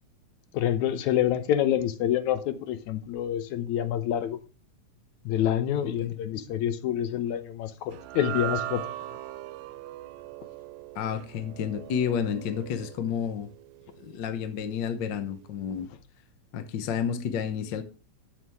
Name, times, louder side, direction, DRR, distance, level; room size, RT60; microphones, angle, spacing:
voice 1, 0.5-4.4 5.3-8.8, left 10 dB, 80° left, 2.2 m, -27 dB
sound 1, 7.9-14.3, right 14 dB, 80° right, 1.9 m, -39 dB
voice 2, 10.9-13.5 14.0-15.9 16.5-17.8, left 8 dB, 60° left, 1.2 m, -30 dB
12.0 x 7.4 x 3.5 m
omnidirectional pair, 3.3 m